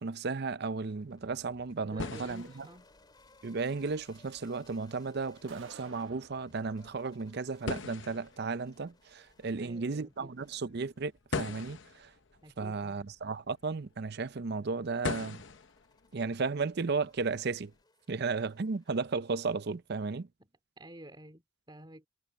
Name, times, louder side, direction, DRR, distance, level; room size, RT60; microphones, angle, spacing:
voice 1, 0.0-2.7 3.4-12.1 12.6-15.4 16.1-17.7 18.1-20.3, right 4 dB, 50° right, 0.5 m, -34 dB
sound 1, 0.8-17.8, left 4 dB, 60° left, 0.9 m, -44 dB
sound 2, 1.1-20.3, left 2 dB, 20° left, 3.0 m, -65 dB
voice 2, 1.9-2.9 9.6-10.4 12.4-13.0 20.4-20.5 20.8-22.1, right 1 dB, 20° right, 3.3 m, -51 dB
sound 3, 5.5-6.5, right 4 dB, 65° right, 1.2 m, -51 dB
head